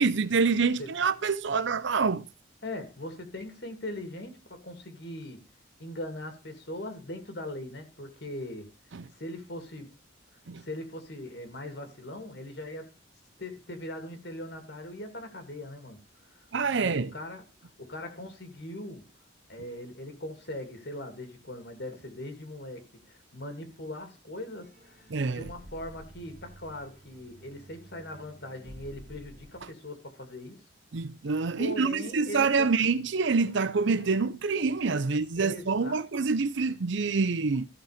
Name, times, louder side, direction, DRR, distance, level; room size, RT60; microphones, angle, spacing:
voice 1, 0.0-2.3 8.9-9.0 10.5-10.6 16.5-17.1 25.1-25.5 30.9-37.7, right 4 dB, 60° right, 0.6 m, -26 dB
voice 2, 2.6-5.4 5.8-8.7 9.1-9.9 10.6-12.9 13.4-16.5 16.7-19.1 19.5-30.6 31.6-32.7 35.4-36.0, left 1 dB, 55° left, 2.4 m, -40 dB
sound 1, 24.6-29.6, right 1 dB, 40° right, 2.3 m, -51 dB
14.5 x 5.8 x 5.0 m
head